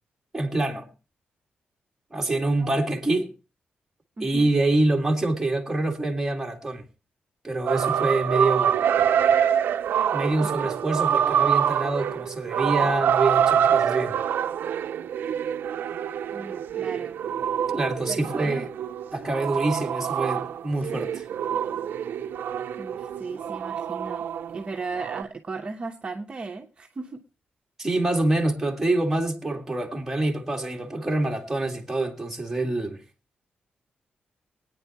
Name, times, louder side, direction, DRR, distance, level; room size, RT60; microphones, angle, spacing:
voice 1, 0.3-0.9 2.1-3.3 4.2-6.8 7.4-8.8 10.1-14.2 17.7-18.7 19.1-21.3 27.8-33.0, right 2 dB, 10° right, 2.1 m, -26 dB
voice 2, 4.2-4.5 10.4-10.5 16.3-17.2 18.1-18.7 22.8-24.3 24.5-27.2, right 4 dB, 30° right, 1.0 m, -36 dB
sound 1, 7.7-24.7 24.9-25.2, right 9 dB, 80° right, 0.6 m, -25 dB
23.5 x 9.4 x 3.0 m
wide cardioid pair, 160°, 3 cm